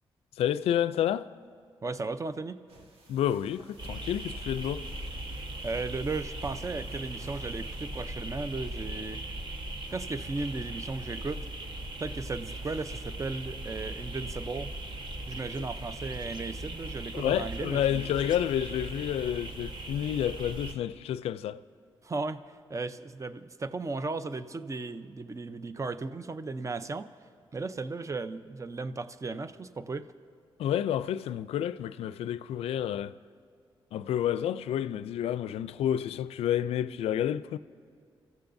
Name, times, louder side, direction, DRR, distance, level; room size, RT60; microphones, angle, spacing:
voice 1, 0.4-1.3 3.1-4.9 17.1-21.6 30.6-33.1 33.9-37.6, left 10 dB, 85° left, 0.4 m, -29 dB
voice 2, 1.8-2.6 5.6-9.2 9.9-11.5 12.0-14.7 15.3-18.0 22.0-27.1 27.5-30.1, right 3 dB, 30° right, 0.7 m, -35 dB
sound 1, 2.7-8.0, right 2 dB, 70° right, 1.7 m, -56 dB
sound 2, 3.8-20.7, right 1 dB, 50° right, 1.4 m, -39 dB
26.5 x 15.0 x 2.7 m
supercardioid pair, 50°, 10 cm